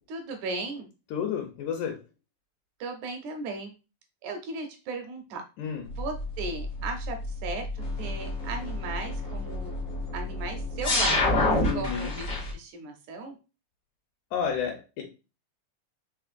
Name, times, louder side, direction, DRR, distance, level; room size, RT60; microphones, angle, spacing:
voice 1, 0.1-0.9 2.8-3.7 4.2-5.4 6.0-7.2 7.4-9.7 10.1-13.4, right 3 dB, 75° right, 4 dB, 1.8 m, -36 dB
voice 2, 1.1-2.0 5.6-5.9 11.6-12.1 14.3-15.0, left 7 dB, 80° left, 2 dB, 2.0 m, -31 dB
sound 1, 5.9-12.5, left 2 dB, 60° left, 0.8 m, -29 dB
5.0 x 3.3 x 2.4 m, 0.31 s
omnidirectional pair, 3.8 m